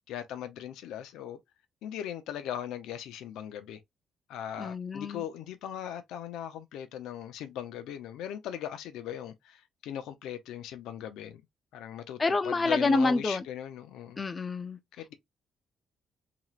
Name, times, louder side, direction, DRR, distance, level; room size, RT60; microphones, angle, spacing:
voice 1, 0.1-1.4 1.8-3.8 4.3-11.4 11.7-14.2 14.9-15.1, left 10 dB, 90° left, 0.6 m, -39 dB
voice 2, 4.6-5.2 12.2-13.4 14.2-14.8, left 3 dB, 30° left, 0.5 m, -27 dB
3.0 x 2.9 x 2.3 m
cardioid pair, 90°, 0 cm